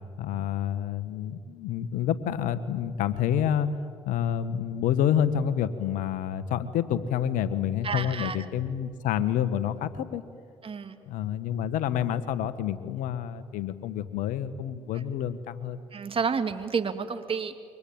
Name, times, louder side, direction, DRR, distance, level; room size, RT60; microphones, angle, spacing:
voice 1, 0.2-3.7 4.0-10.2 11.0-15.8, left 9 dB, 75° left, 13 dB, 1.5 m, -28 dB
voice 2, 7.8-8.4 10.6-11.0 15.9-17.6, right 5 dB, 40° right, 8 dB, 2.6 m, -30 dB
28.0 x 24.0 x 8.9 m, 2.1 s
hypercardioid pair, 55°, 14 cm